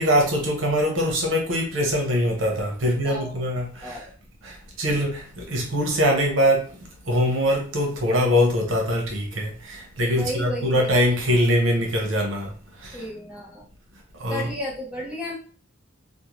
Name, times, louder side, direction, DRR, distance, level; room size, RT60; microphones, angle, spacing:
voice 1, 0.0-4.1 4.4-13.1 13.9-14.5, equal, 80° right, 0.8 m, -23 dB
voice 2, 2.8-3.4 3.8-4.1 10.0-10.9 12.9-13.7 14.3-15.4, left 1 dB, 5° right, 0.7 m, -33 dB
2.6 x 2.1 x 3.0 m
head